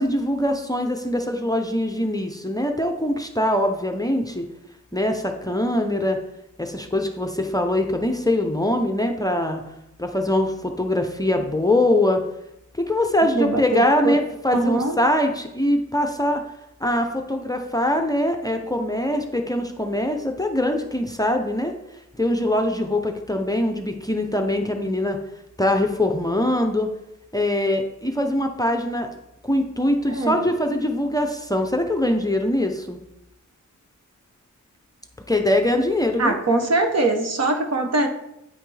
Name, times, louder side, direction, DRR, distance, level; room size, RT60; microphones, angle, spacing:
voice 1, 0.0-4.4 4.9-6.2 6.6-9.6 10.0-12.2 12.8-16.4 16.8-21.7 22.2-25.2 25.6-26.9 27.3-29.1 29.4-33.0 35.3-36.4, left 1 dB, 10° left, 4 dB, 0.6 m, -22 dB
voice 2, 13.3-14.2 14.5-15.0 30.1-30.4 36.2-38.1, right 2 dB, 55° right, 4 dB, 1.0 m, -22 dB
9.0 x 5.7 x 3.3 m, 0.85 s
wide cardioid pair, 115°, 31 cm